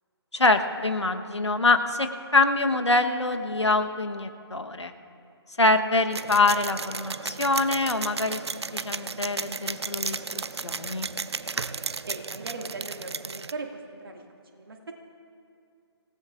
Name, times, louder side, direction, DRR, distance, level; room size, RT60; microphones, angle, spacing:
voice 1, 0.3-4.9 5.6-8.4 8.7-11.1, left 3 dB, 85° left, 7 dB, 1.2 m, -24 dB
sound 1, 6.1-13.5, right 4 dB, 70° right, 0.6 m, -34 dB
voice 2, 12.1-14.2 14.5-14.9, right 3 dB, 55° right, 2 dB, 2.2 m, -38 dB
27.0 x 17.5 x 2.5 m, 2.5 s
figure-of-eight pair, 145°, 14 cm